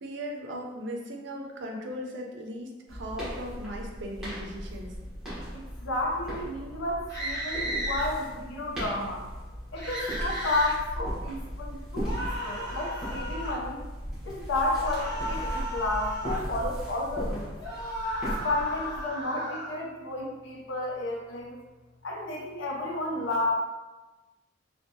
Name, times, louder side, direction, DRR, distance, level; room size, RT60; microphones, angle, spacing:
voice 1, 0.0-4.9, equal, 65° right, 0 dB, 0.5 m, -38 dB
sound 1, 2.9-19.0, equal, 5° right, 0.9 m, -37 dB
voice 2, 5.5-9.2 9.7-13.8 14.2-17.5 18.4-21.6 22.0-23.5, left 2 dB, 80° left, -1 dB, 0.5 m, -31 dB
sound 2, 7.1-8.1 9.8-10.8 12.0-13.6 14.8-16.5 17.6-19.7, equal, 60° left, 1.1 m, -34 dB
2.6 x 2.2 x 2.6 m, 1.2 s
head